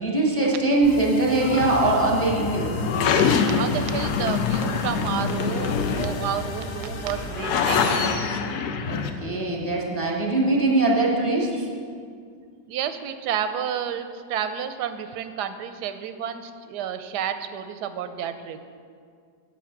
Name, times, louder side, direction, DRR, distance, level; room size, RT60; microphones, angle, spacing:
voice 1, 0.0-2.7 8.9-11.6, right 2 dB, 10° left, -2 dB, 0.8 m, -22 dB
sound 1, 0.8-7.9, left 4 dB, 65° left, 1.0 m, -37 dB
sound 2, 1.3-9.1, left 5 dB, 85° left, 1.2 m, -25 dB
voice 2, 3.2-8.0 12.7-18.6, right 8 dB, 85° right, 10 dB, 1.2 m, -31 dB
8.3 x 5.8 x 5.8 m, 2.2 s
omnidirectional pair, 1.7 m